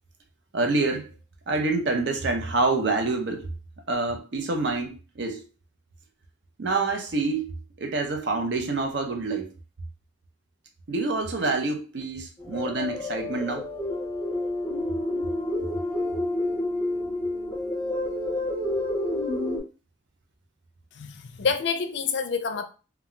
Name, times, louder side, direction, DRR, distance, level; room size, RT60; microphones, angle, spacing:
voice 1, 0.5-1.2 1.5-3.5 3.9-5.4 6.6-9.5 10.9-13.7, right 3 dB, 60° right, 0.5 m, -27 dB
sound 1, 12.4-19.6, left 1 dB, 10° left, 0.7 m, -29 dB
voice 2, 20.9-22.7, left 5 dB, 60° left, 0.4 m, -27 dB
2.2 x 2.2 x 3.6 m
head